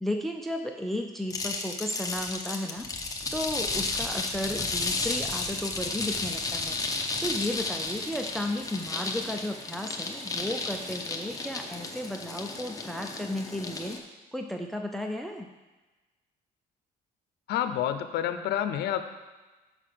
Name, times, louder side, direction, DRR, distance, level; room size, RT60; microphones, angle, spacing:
voice 1, 0.0-2.9 3.3-6.8 7.2-14.0 14.3-15.5, left 1 dB, ahead, 4 dB, 0.5 m, -34 dB
sound 1, 1.3-14.0, left 3 dB, 20° left, 0.9 m, -33 dB
voice 2, 17.5-19.0, left 10 dB, 75° left, 9 dB, 0.6 m, -28 dB
5.7 x 5.0 x 6.7 m, 1.2 s
cardioid pair, 110°, 17 cm